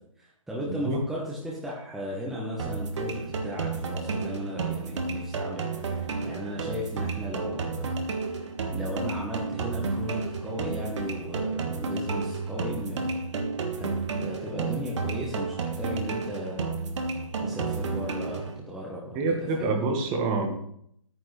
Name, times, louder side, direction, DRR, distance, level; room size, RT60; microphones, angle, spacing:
voice 1, 0.2-8.0 8.7-13.1 13.8-13.9 14.2-16.7 17.4-19.9, equal, ahead, -5 dB, 1.1 m, -36 dB
voice 2, 0.7-1.0 17.4-17.6 19.1-20.5, right 3 dB, 20° right, 2 dB, 1.5 m, -27 dB
sound 1, 2.6-18.6, right 4 dB, 60° right, 1.8 m, -31 dB
11.0 x 9.4 x 3.3 m, 0.69 s
hypercardioid pair, 155°, 17 cm